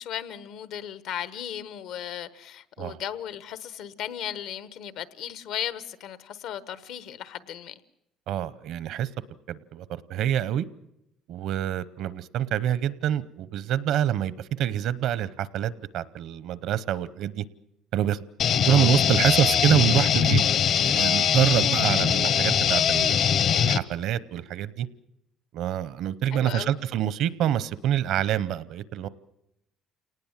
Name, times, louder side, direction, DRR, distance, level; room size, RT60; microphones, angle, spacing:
voice 1, 0.0-7.8 18.6-18.9 26.3-26.7, left 10 dB, 75° left, 15 dB, 1.1 m, -36 dB
voice 2, 8.3-9.1 9.5-10.7 11.3-17.4 17.9-18.2 18.6-20.4 20.8-23.2 23.6-24.9 25.5-29.1, right 10 dB, 70° right, 18 dB, 0.8 m, -26 dB
sound 1, 18.4-23.8, left 8 dB, 50° left, 0.9 m, -22 dB
28.5 x 19.0 x 7.4 m, 0.84 s
cardioid pair, 140°, 0 cm